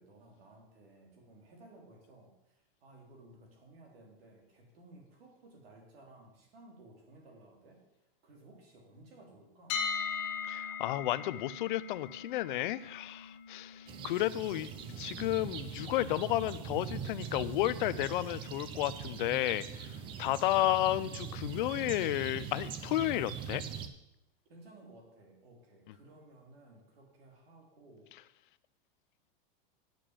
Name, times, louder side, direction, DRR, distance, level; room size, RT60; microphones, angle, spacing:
voice 1, 0.0-9.8 24.5-28.1, right 2 dB, 80° right, 0 dB, 3.6 m, -57 dB
sound 1, 9.7-21.6, left 6 dB, 40° left, 1.7 m, -43 dB
voice 2, 10.5-19.9 20.2-23.6, left 14 dB, 60° left, 17 dB, 0.5 m, -32 dB
sound 2, 13.9-23.9, right 7 dB, 15° right, 0.4 m, -42 dB
9.1 x 6.9 x 7.4 m, 0.91 s
supercardioid pair, 165°, 29 cm